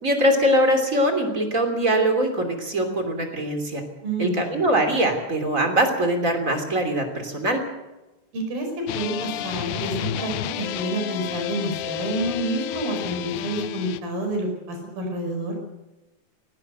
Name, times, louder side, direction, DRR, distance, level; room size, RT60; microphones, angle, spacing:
voice 1, 0.0-3.8 4.2-7.6, right 1 dB, 25° right, 5 dB, 3.0 m, -22 dB
voice 2, 4.0-4.7 8.3-15.6, right 1 dB, 75° right, 4 dB, 7.0 m, -29 dB
sound 1, 8.9-14.0, left 11 dB, 80° left, 2.6 m, -31 dB
19.0 x 17.5 x 7.9 m, 1.1 s
omnidirectional pair, 4.1 m